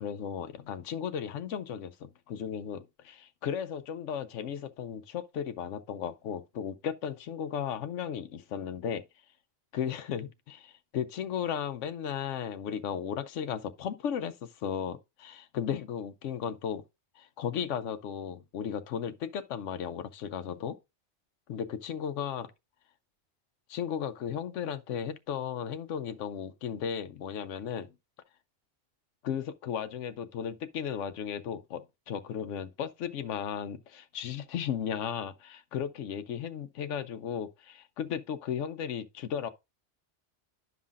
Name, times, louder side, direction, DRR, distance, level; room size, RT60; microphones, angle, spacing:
voice 1, 0.0-9.0 9.7-16.8 17.2-20.8 21.5-22.5 23.7-27.9 29.2-39.5, left 8 dB, 90° left, 1.0 m, -35 dB
11.0 x 5.6 x 2.4 m
omnidirectional pair, 1.2 m